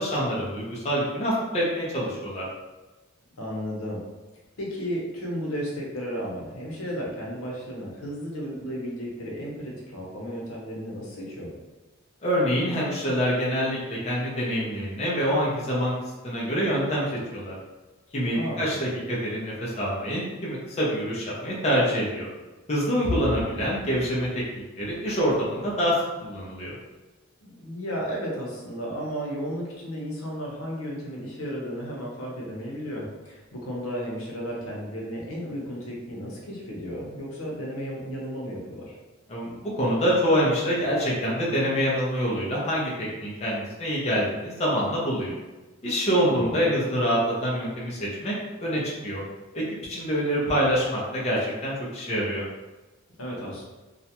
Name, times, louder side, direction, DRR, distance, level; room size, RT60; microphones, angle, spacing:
voice 1, 0.0-2.4 12.2-15.9 16.2-17.5 18.1-22.3 22.7-24.3 24.8-26.0 26.2-26.7 39.3-45.3 45.8-48.3 48.6-49.2 49.5-52.4, equal, 30° left, -5 dB, 0.5 m, -26 dB
voice 2, 3.4-4.0 4.6-11.5 18.3-18.7 27.4-39.0 46.2-46.6 53.2-53.7, equal, 85° left, -3 dB, 0.7 m, -34 dB
2.4 x 2.1 x 2.8 m, 1.1 s
head